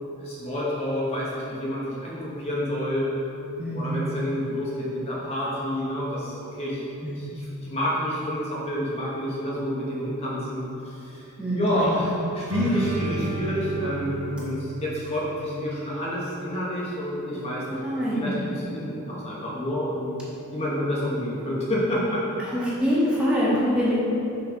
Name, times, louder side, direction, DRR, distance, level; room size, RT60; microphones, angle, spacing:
voice 1, 0.2-3.1 3.7-6.8 7.1-11.2 11.6-17.9 18.1-20.2 20.5-22.3, equal, 30° left, -6 dB, 0.9 m, -29 dB
voice 2, 3.6-4.1 7.0-7.2 11.4-12.0 17.7-18.5 22.5-23.9, equal, 5° right, -8 dB, 1.1 m, -25 dB
sound 1, 12.5-16.1, right 2 dB, 80° right, 0.6 m, -31 dB
6.0 x 3.8 x 5.2 m, 2.9 s
head